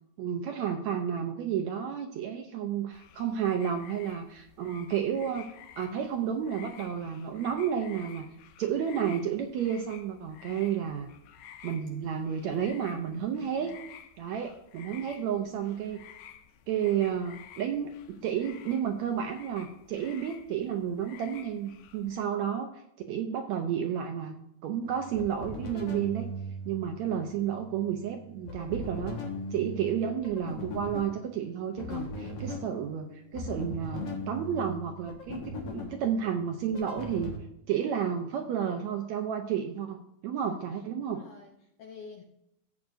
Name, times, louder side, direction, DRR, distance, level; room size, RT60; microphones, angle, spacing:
voice 1, 0.2-5.5 5.8-8.3 8.6-11.1 11.6-13.8 14.2-16.0 16.7-22.7 23.1-26.3 26.7-29.2 29.5-37.3 37.7-40.0 40.2-41.2, right 8 dB, 75° right, 4 dB, 1.7 m, -31 dB
sound 1, 2.9-22.2, left 9 dB, 90° left, 2.4 m, -52 dB
voice 2, 13.4-13.8 29.7-30.1 40.5-40.6 41.0-42.2, left 6 dB, 75° left, 3 dB, 1.5 m, -49 dB
sound 2, 24.8-37.4, left 1 dB, 55° left, 2.3 m, -40 dB
14.0 x 8.4 x 2.6 m, 0.80 s
omnidirectional pair, 3.8 m